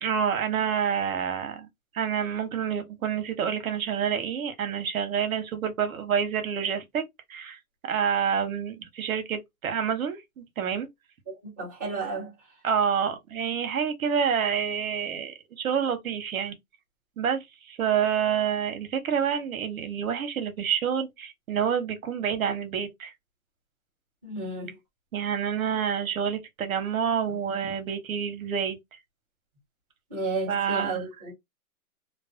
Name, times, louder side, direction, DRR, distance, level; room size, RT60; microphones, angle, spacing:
voice 1, 0.0-1.7 1.9-7.0 7.3-10.9 12.6-16.5 17.2-23.1 25.1-28.8 30.5-31.1, right 7 dB, 70° right, 0.9 m, -28 dB
voice 2, 11.3-12.3 24.2-24.7 30.1-31.3, right 3 dB, 10° right, 0.3 m, -32 dB
2.5 x 2.2 x 2.4 m
hypercardioid pair, 145°, 43 cm